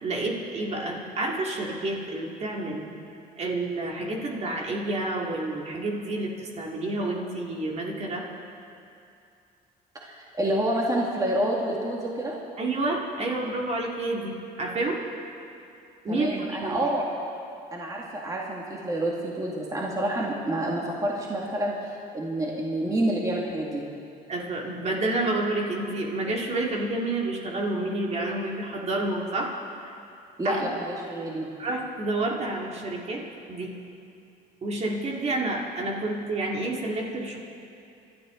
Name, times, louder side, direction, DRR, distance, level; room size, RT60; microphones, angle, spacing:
voice 1, 0.0-2.8 3.4-8.3 12.6-15.1 16.0-16.9 24.3-29.5 29.8-30.0 30.4-30.6 31.6-33.8 34.6-37.4, right 2 dB, 40° right, -1 dB, 2.5 m, -29 dB
voice 2, 10.0-12.4 16.1-17.0 17.7-23.8 30.4-31.5, right 1 dB, 20° right, -3 dB, 2.2 m, -28 dB
26.5 x 12.5 x 3.9 m, 2.6 s
cardioid pair, 110°, 17 cm